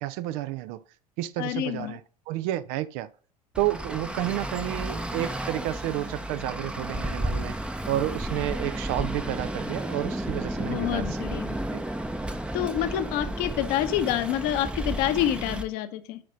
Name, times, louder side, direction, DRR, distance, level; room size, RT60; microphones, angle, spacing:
voice 1, 0.0-0.8 1.2-2.0 2.3-3.1 3.6-7.6 7.9-11.1 11.7-11.8, right 14 dB, 50° right, 0.5 m, -30 dB
voice 2, 1.4-2.0 10.6-11.6 12.5-16.2, left 12 dB, 50° left, 0.9 m, -27 dB
Traffic noise roadway noise, 3.5-15.6, right 1 dB, 5° right, 0.7 m, -32 dB
7.7 x 5.2 x 4.1 m
figure-of-eight pair, 70°, 20 cm